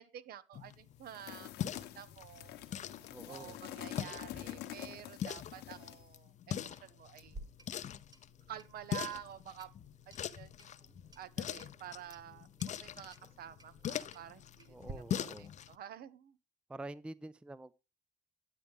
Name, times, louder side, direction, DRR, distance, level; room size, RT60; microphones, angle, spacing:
voice 1, 0.0-1.5 1.8-2.6 3.3-7.3 8.5-9.7 10.1-10.9 11.2-16.4, right 10 dB, 65° right, 0.8 m, -50 dB
sound 1, 0.5-15.8, left 10 dB, 45° left, 0.6 m, -43 dB
sound 2, 1.0-6.1, left 13 dB, 80° left, 1.0 m, -47 dB
voice 2, 3.1-3.6 14.7-15.5 16.7-17.7, right 2 dB, 5° right, 0.4 m, -47 dB
Clock, 7.2-14.9, right 2 dB, 25° right, 1.0 m, -56 dB
9.4 x 8.2 x 3.6 m
cardioid pair, 110°, 17 cm